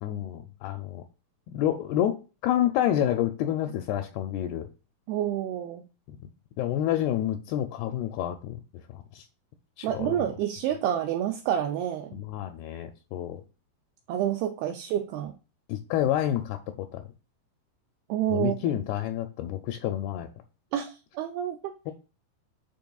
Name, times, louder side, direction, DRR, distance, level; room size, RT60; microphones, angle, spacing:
voice 1, 0.0-1.0 1.5-4.7 6.1-6.2 6.6-8.6 8.9-9.3 9.8-10.3 12.1-13.4 15.7-16.6 16.9-17.0 18.3-20.3 21.9-22.0, left 11 dB, 80° left, 6 dB, 2.4 m, -29 dB
voice 2, 5.1-5.8 9.8-12.2 14.1-15.3 18.1-18.6 20.7-21.7, right 11 dB, 80° right, 5 dB, 2.4 m, -28 dB
9.1 x 5.1 x 2.3 m, 0.33 s
omnidirectional pair, 4.8 m